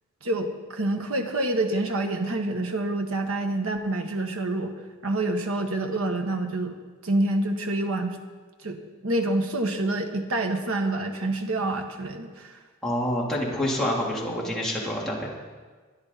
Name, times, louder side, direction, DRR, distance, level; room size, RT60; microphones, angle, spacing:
voice 1, 0.2-4.7 5.0-8.2 8.6-12.6, right 2 dB, 70° right, 4 dB, 1.5 m, -27 dB
voice 2, 12.8-15.3, left 1 dB, ahead, -5 dB, 3.2 m, -27 dB
22.5 x 11.0 x 4.2 m, 1.4 s
head